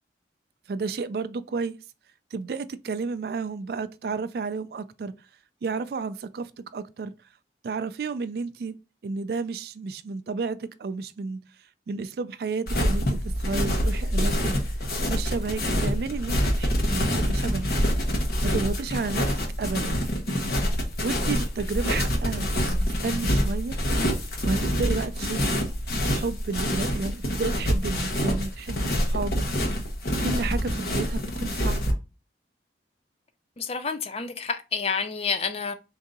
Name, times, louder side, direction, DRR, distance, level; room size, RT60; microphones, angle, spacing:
voice 1, 0.7-1.8 2.3-5.1 5.6-7.1 7.6-8.7 9.0-11.4 11.9-14.6 15.1-17.7 18.4-20.1 21.0-23.8 24.4-25.7 26.1-29.4 30.2-31.8, right 4 dB, 55° right, 0.3 m, -32 dB
sound 1, 12.7-31.9, equal, 55° left, 0.9 m, -26 dB
voice 2, 33.6-35.7, left 5 dB, 35° left, 0.4 m, -29 dB
3.8 x 2.7 x 3.6 m
head